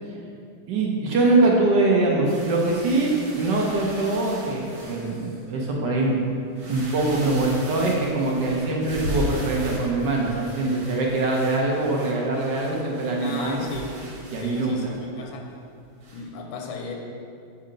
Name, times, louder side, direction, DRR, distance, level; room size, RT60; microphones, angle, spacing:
voice 1, 0.7-6.3 6.7-13.7 14.3-14.8, right 2 dB, 65° right, -2 dB, 1.3 m, -23 dB
sound 1, 2.2-5.4 6.0-6.1 6.5-15.0 16.0-16.3, equal, 85° right, 2.2 m, -38 dB
voice 2, 13.2-14.0 14.4-15.5 16.1-16.9, left 3 dB, 85° left, 1 dB, 1.4 m, -35 dB
7.5 x 2.8 x 5.0 m, 2.4 s
omnidirectional pair, 2.2 m